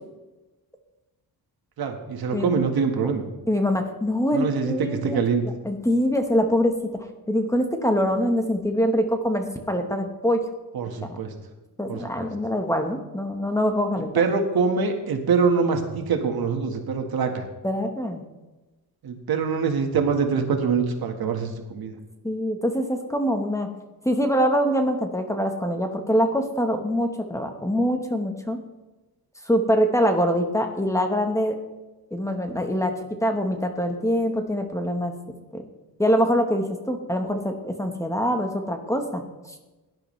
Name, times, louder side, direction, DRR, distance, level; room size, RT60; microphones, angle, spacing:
voice 1, 1.8-3.2 4.3-5.4 10.7-11.3 11.9-12.3 14.1-17.5 19.0-21.9, right 5 dB, 70° right, 5 dB, 1.7 m, -24 dB
voice 2, 3.5-5.2 5.6-6.7 7.3-10.4 11.1-11.2 11.8-14.2 17.6-18.2 22.2-23.7 24.0-28.6 29.5-31.6 32.1-35.2 35.5-35.6 36.0-39.2, equal, 10° left, 4 dB, 1.2 m, -24 dB
17.5 x 11.0 x 3.3 m, 1.1 s
wide cardioid pair, 130°, 38 cm